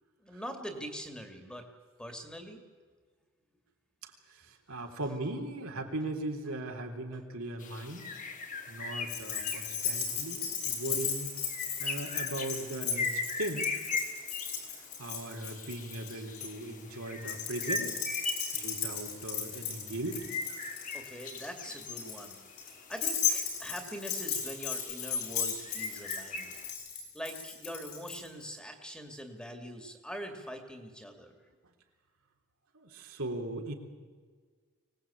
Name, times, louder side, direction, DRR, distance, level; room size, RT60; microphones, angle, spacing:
voice 1, 0.2-1.6 2.0-2.6 20.9-22.4 22.9-26.5 27.1-31.4, equal, 5° left, 5 dB, 2.4 m, -43 dB
voice 2, 4.7-8.1 8.7-11.3 11.8-13.7 15.0-17.9 18.5-20.3 32.7-33.7, right 2 dB, 75° right, 2 dB, 3.5 m, -38 dB
sound 1, 7.6-26.7, left 3 dB, 35° left, 1.9 m, -41 dB
Keys jangling, 9.1-16.5 17.2-28.2, left 7 dB, 80° left, 6.9 m, -36 dB
24.5 x 19.0 x 8.7 m, 1.5 s
head